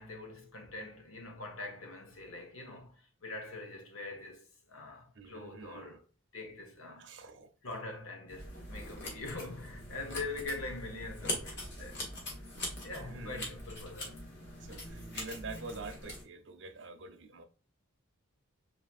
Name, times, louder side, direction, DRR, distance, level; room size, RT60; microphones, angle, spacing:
voice 1, 0.0-6.0 6.3-7.1 7.6-12.0 12.8-14.2, left 3 dB, 80° left, 1.0 m, -43 dB
voice 2, 5.1-6.0 7.0-7.5 13.1-13.5 14.6-17.4, right 3 dB, 55° right, 0.7 m, -46 dB
sound 1, 8.3-16.2, left 1 dB, 55° left, 1.8 m, -42 dB
5.0 x 2.9 x 2.4 m
head